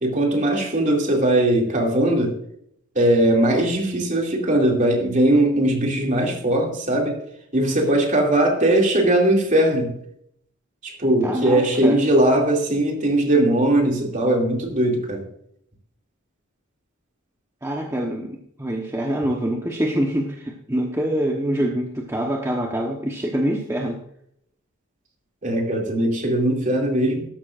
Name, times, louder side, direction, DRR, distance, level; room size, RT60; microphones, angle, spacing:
voice 1, 0.0-2.3 3.0-7.2 7.5-9.9 10.8-15.2 25.4-27.3, right 1 dB, 40° right, 1 dB, 2.6 m, -20 dB
voice 2, 11.2-12.0 17.6-24.0, right 1 dB, 15° right, 0 dB, 1.0 m, -25 dB
13.5 x 11.5 x 2.5 m, 0.71 s
head